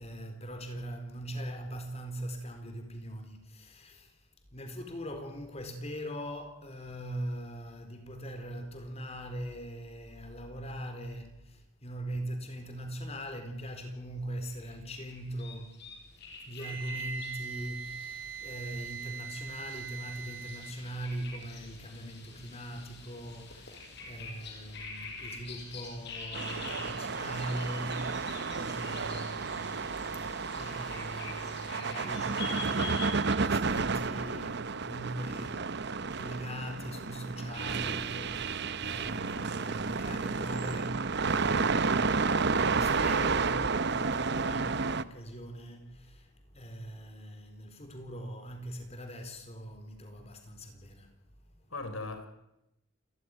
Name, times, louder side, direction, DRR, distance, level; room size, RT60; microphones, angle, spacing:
voice 1, 0.0-4.2 4.5-51.1, right 1 dB, 30° left, 4.2 m, -41 dB
sound 1, 14.4-33.3, left 4 dB, 55° left, 6.5 m, -46 dB
Wind instrument woodwind instrument, 16.6-20.8, right 7 dB, 75° right, 2.9 m, -41 dB
sound 2, 26.3-45.0, right 4 dB, 55° right, 0.9 m, -31 dB
voice 2, 41.5-41.9 51.7-52.3, left 2 dB, 80° left, 4.5 m, -39 dB
28.5 x 15.0 x 10.0 m
head